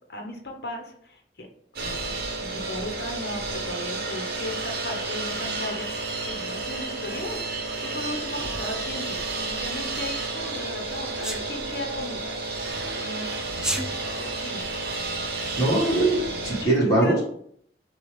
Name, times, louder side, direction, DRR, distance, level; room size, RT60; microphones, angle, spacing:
voice 1, 0.1-1.5 1.8-2.1 2.4-7.4 7.8-12.5 12.9-13.4 14.2-14.8 16.6-17.1, left 1 dB, 60° left, 2 dB, 1.0 m, -36 dB
sound 1, 1.8-16.6, right 3 dB, 55° right, 0.8 m, -31 dB
Sneeze, 11.2-11.4 13.5-13.9, right 1 dB, 5° right, 0.3 m, -28 dB
voice 2, 15.6-17.2, right 2 dB, 20° left, -6 dB, 1.6 m, -21 dB
6.7 x 2.4 x 3.3 m, 0.66 s
head